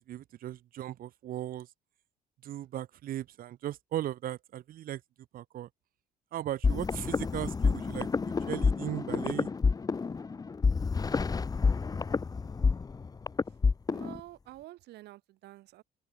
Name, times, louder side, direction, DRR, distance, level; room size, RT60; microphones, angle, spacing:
voice 1, 0.0-1.7 2.4-5.0 5.3-5.7 6.3-8.1 8.5-9.5, right 12 dB, 60° right, 0.9 m, -37 dB
sound 1, 6.6-14.2, left 4 dB, 20° left, 0.9 m, -29 dB
voice 2, 13.9-15.8, right 16 dB, 80° right, 3.4 m, -48 dB
open air
cardioid pair, 110°, 17 cm